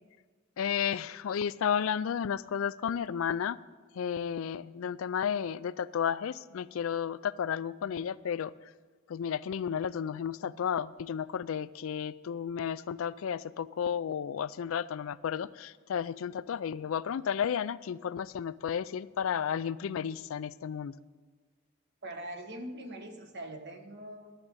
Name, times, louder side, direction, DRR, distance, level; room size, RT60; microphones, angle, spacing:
voice 1, 0.6-3.6 3.9-8.5 9.1-20.9, left 8 dB, 70° left, 17 dB, 0.4 m, -32 dB
voice 2, 22.0-24.3, right 1 dB, 55° right, 6 dB, 1.4 m, -42 dB
11.5 x 7.5 x 8.3 m, 1.4 s
head